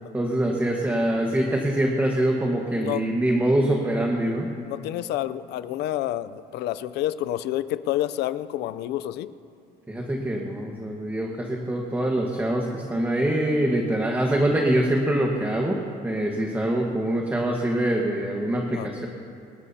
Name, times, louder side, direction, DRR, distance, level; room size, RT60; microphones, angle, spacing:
voice 1, 0.1-4.5 9.9-19.1, right 1 dB, 10° right, 0 dB, 1.4 m, -24 dB
voice 2, 4.7-9.3 18.7-18.9, left 13 dB, 80° left, 14 dB, 0.5 m, -29 dB
26.0 x 12.5 x 2.8 m, 2.5 s
cardioid pair, 110°, 17 cm